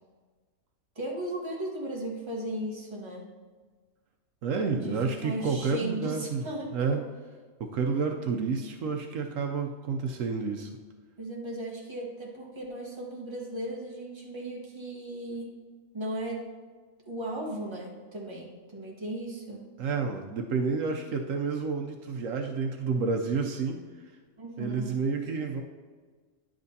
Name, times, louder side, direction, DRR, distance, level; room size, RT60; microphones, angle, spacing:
voice 1, 0.9-3.3 4.8-7.0 11.2-15.5 15.9-16.4 17.1-19.6 24.4-24.9, right 1 dB, 20° right, -2 dB, 1.3 m, -36 dB
voice 2, 4.4-7.0 7.6-10.7 19.8-23.8 24.6-25.6, right 5 dB, 75° right, 3 dB, 1.0 m, -30 dB
10.5 x 7.7 x 2.7 m, 1.5 s
omnidirectional pair, 1.4 m